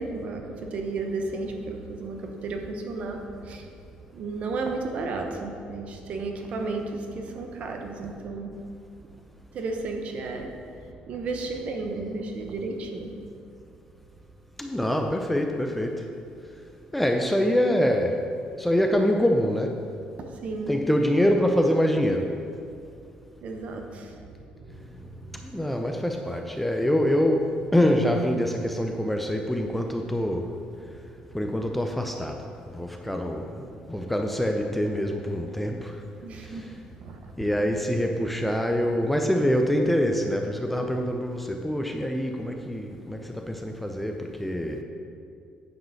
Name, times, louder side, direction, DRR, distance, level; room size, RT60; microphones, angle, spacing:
voice 1, 0.0-3.7 4.1-8.6 9.5-10.5 11.1-13.1 20.4-20.7 23.4-25.5 36.2-37.3, right 3 dB, 50° right, 4 dB, 1.0 m, -33 dB
voice 2, 14.6-16.1 16.9-18.2 18.6-19.8 20.7-22.3 25.4-30.5 31.3-36.0 36.4-36.7 37.4-44.8, equal, 5° left, 3 dB, 0.5 m, -25 dB
9.4 x 4.9 x 6.4 m, 2.5 s
cardioid pair, 150°, 3 cm